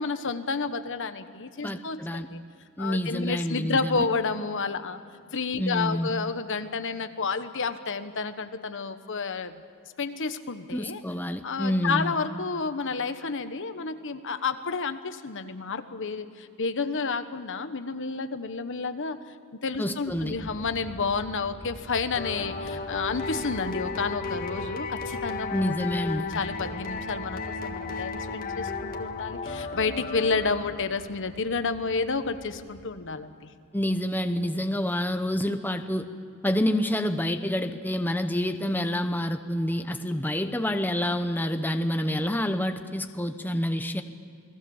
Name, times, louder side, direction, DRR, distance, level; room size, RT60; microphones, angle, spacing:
voice 1, 0.0-2.5 2.8-5.0 5.3-9.5 10.0-11.0 11.4-19.2 19.6-25.7 26.3-33.5, left 4 dB, 60° left, 10 dB, 1.2 m, -30 dB
voice 2, 1.6-2.3 2.8-4.0 5.6-6.1 10.7-12.1 19.8-20.3 25.5-26.3 33.7-36.1 36.4-44.0, left 1 dB, 10° left, 7 dB, 0.9 m, -28 dB
Aircraft, 20.1-32.9, equal, 50° right, 3.3 m, -46 dB
sound 1, 22.2-31.1, left 4 dB, 40° left, 1.7 m, -34 dB
29.0 x 20.0 x 7.2 m, 2.4 s
head